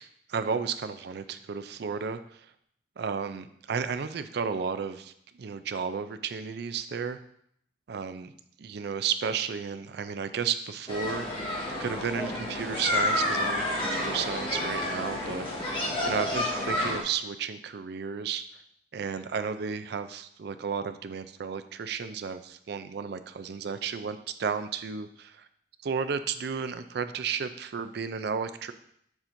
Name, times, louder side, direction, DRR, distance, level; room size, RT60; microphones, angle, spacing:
voice 1, 0.0-2.4 3.0-7.2 7.9-8.3 8.6-11.3 11.8-15.8 16.0-18.4 18.9-25.5 25.8-28.7, right 6 dB, 60° right, 10 dB, 0.4 m, -33 dB
sound 1, 10.9-17.0, left 1 dB, 30° left, 1.3 m, -30 dB
7.1 x 5.8 x 2.6 m, 0.70 s
head